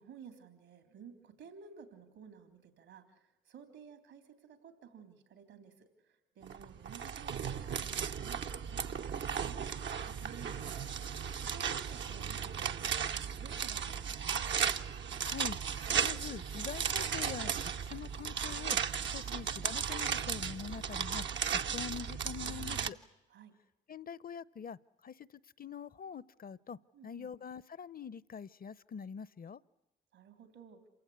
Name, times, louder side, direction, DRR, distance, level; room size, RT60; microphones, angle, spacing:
voice 1, 0.0-3.2 3.5-10.8 11.4-14.4 19.2-19.3 22.4-23.0 23.3-23.5 26.9-27.3 30.1-30.8, right 7 dB, 85° right, 8 dB, 3.5 m, -54 dB
sound 1, 6.4-22.9, right 7 dB, 65° right, 0.9 m, -36 dB
voice 2, 15.2-15.6 16.0-18.8 19.1-21.3 21.5-23.0 23.9-24.8 25.0-26.8 27.0-29.6, left 7 dB, 45° left, 21 dB, 0.8 m, -44 dB
27.5 x 16.5 x 9.7 m, 1.0 s
supercardioid pair, 50°, 20 cm